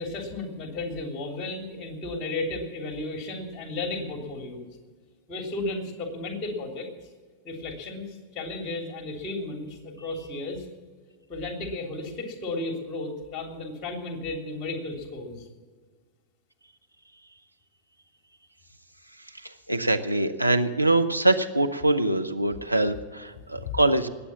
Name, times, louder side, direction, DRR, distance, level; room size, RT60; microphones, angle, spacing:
voice 1, 0.0-4.7 5.3-6.9 7.4-10.6 11.3-15.5 23.5-23.8, left 2 dB, 30° left, 3 dB, 3.3 m, -34 dB
voice 2, 19.4-24.1, right 2 dB, 90° right, 6 dB, 0.8 m, -24 dB
20.0 x 8.5 x 7.2 m, 1.5 s
figure-of-eight pair, 90°, 0 cm